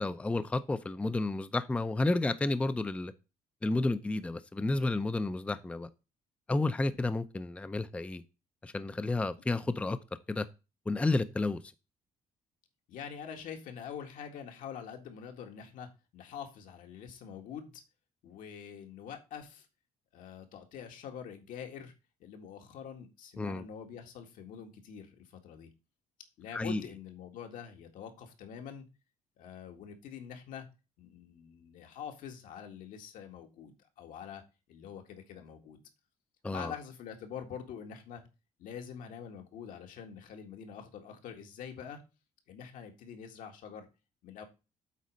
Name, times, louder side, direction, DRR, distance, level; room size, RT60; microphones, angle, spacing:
voice 1, 0.0-3.1 3.6-5.9 6.5-8.2 8.6-10.0 10.3-10.5 10.9-11.6 23.4-23.6 26.5-26.8 36.4-36.7, left 2 dB, 10° left, 0.5 m, -31 dB
voice 2, 12.9-17.8 18.2-19.7 20.1-21.9 22.2-25.7 26.4-28.9 29.4-30.7 31.0-34.4 34.7-35.8 36.5-38.3 38.6-42.0 42.5-43.9 44.2-44.4, left 8 dB, 80° left, 1.8 m, -45 dB
8.3 x 4.1 x 6.3 m
cardioid pair, 140°, 14 cm